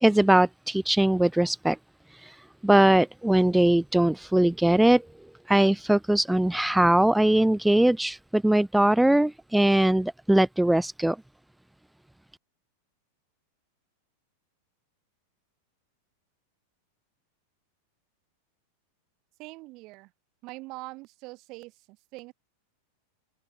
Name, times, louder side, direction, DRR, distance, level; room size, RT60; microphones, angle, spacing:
voice 1, 0.0-1.8 2.2-2.4 2.6-5.0 5.5-11.2, right 1 dB, 5° right, 0.3 m, -21 dB
voice 2, 19.4-20.1 20.4-22.3, right 23 dB, 40° right, 3.3 m, -43 dB
figure-of-eight pair, 90°, 0 cm